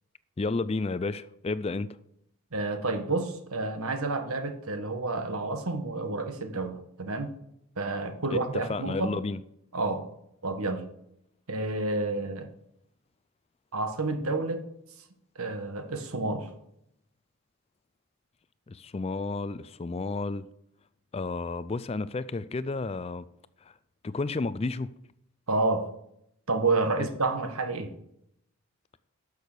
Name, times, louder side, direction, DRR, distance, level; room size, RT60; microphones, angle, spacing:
voice 1, 0.4-1.9 8.3-9.4 18.7-20.5 21.1-23.2 24.0-24.9 27.0-27.1, left 3 dB, 25° left, 0.4 m, -31 dB
voice 2, 2.5-7.3 7.8-9.1 9.7-10.1 10.4-10.8 11.5-12.5 13.7-14.6 15.3-16.5 25.5-25.9 26.5-27.9, right 3 dB, 80° right, 1.4 m, -29 dB
12.0 x 6.4 x 6.7 m
head